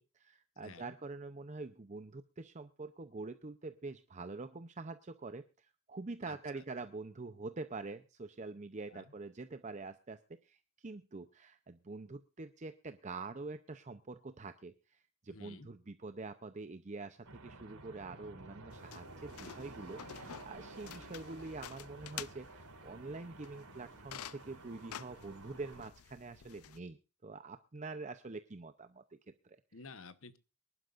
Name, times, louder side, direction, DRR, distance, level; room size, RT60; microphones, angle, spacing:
voice 1, 0.0-29.2 29.4-29.6, right 3 dB, 30° right, 10 dB, 0.6 m, -46 dB
voice 2, 0.6-0.9 6.3-6.6 8.9-9.1 15.3-15.7 29.7-30.4, left 4 dB, 65° left, 13 dB, 1.1 m, -52 dB
sound 1, 17.2-25.9, right 2 dB, 90° right, 3.5 m, -52 dB
sound 2, 18.7-26.8, left 10 dB, 80° left, 0.5 m, -51 dB
24.0 x 11.5 x 2.5 m, 0.30 s
head